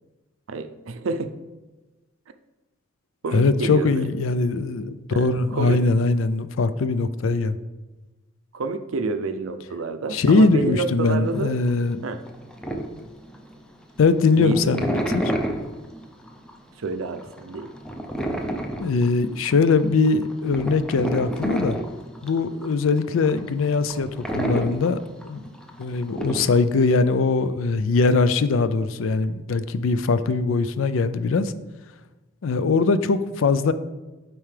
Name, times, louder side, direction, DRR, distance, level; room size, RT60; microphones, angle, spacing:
voice 1, 0.5-1.4 3.2-4.1 5.1-5.9 8.5-11.6 12.0-12.2 14.4-14.8 16.8-17.7, right 3 dB, 80° right, 10 dB, 0.5 m, -29 dB
voice 2, 3.3-7.6 10.1-12.0 14.0-15.3 18.8-21.8 22.2-25.0 25.2-25.5 25.8-31.5 32.4-33.7, left 3 dB, 75° left, 13 dB, 0.4 m, -21 dB
sound 1, 11.2-13.8 14.2-26.7, right 1 dB, 5° left, 0.6 m, -30 dB
8.9 x 4.6 x 3.3 m, 1.1 s
head